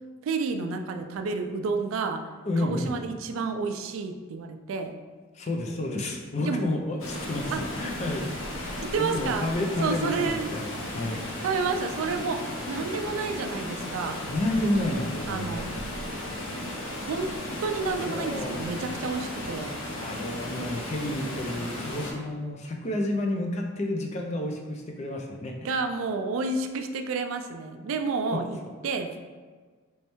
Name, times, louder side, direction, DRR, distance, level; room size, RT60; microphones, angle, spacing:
voice 1, 0.2-2.3 2.6-5.0 6.4-6.7 7.5-7.7 8.8-9.5 9.8-10.5 11.4-14.2 15.3-15.7 17.1-17.3 17.6-19.8 25.6-28.6 28.8-29.1, right 4 dB, 75° right, 6 dB, 0.3 m, -30 dB
voice 2, 2.5-2.9 5.3-10.7 10.9-11.3 14.3-15.7 18.1-18.7 20.0-25.7 28.3-28.4, left 1 dB, 35° left, 2 dB, 0.4 m, -30 dB
Water, 7.0-22.1, left 1 dB, 85° left, 0.7 m, -35 dB
3.2 x 3.1 x 3.0 m, 1.5 s
head